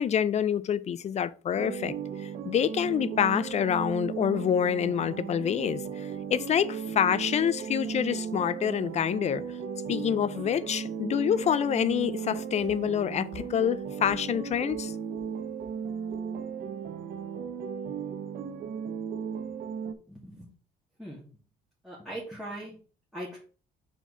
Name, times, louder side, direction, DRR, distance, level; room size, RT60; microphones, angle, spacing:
voice 1, 0.0-1.9 2.2-9.4 9.9-14.9, left 9 dB, 40° left, 0.5 m, -27 dB
sound 1, 1.5-19.9, right 7 dB, 60° right, 0.9 m, -36 dB
voice 2, 20.1-20.5 21.0-21.3 21.8-22.8 23.1-23.4, right 1 dB, ahead, 2.1 m, -40 dB
4.5 x 4.4 x 5.6 m
cardioid pair, 110°, 17 cm